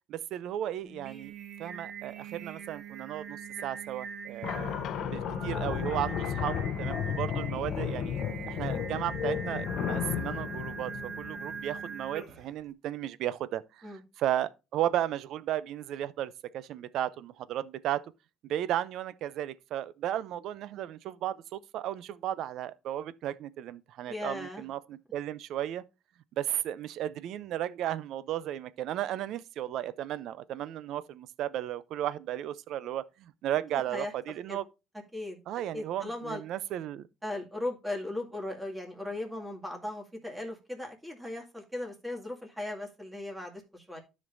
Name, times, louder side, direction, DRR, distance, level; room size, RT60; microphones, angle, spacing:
voice 1, 0.1-1.3 1.6-4.7 5.1-8.2 8.5-18.0 18.4-25.8 26.4-34.6 35.5-37.1, right 12 dB, 70° right, 0.5 m, -34 dB
Singing, 0.8-12.6, right 6 dB, 50° right, 1.5 m, -42 dB
sound 1, 4.4-11.8, left 9 dB, 60° left, 0.7 m, -33 dB
voice 2, 24.1-24.7 33.7-34.1 34.5-34.6 35.1-35.4 35.7-36.4 37.2-44.0, left 1 dB, 10° right, 2.2 m, -37 dB
12.5 x 5.2 x 2.6 m
cardioid pair, 115°, 0 cm